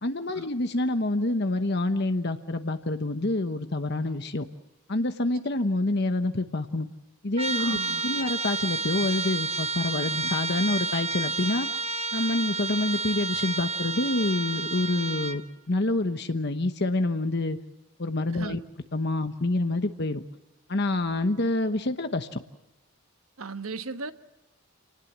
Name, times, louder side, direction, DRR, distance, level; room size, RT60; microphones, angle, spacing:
voice 1, 0.0-4.4 4.9-6.9 7.2-11.7 12.1-15.4 15.7-17.6 18.0-18.6 18.9-20.2 20.7-22.4, left 2 dB, 50° left, 1.0 m, -27 dB
Trumpet, 7.4-15.4, right 3 dB, 30° right, 1.0 m, -30 dB
voice 2, 7.6-8.0 18.4-18.6 23.4-24.1, right 3 dB, 75° right, 1.2 m, -36 dB
28.0 x 19.5 x 7.4 m
head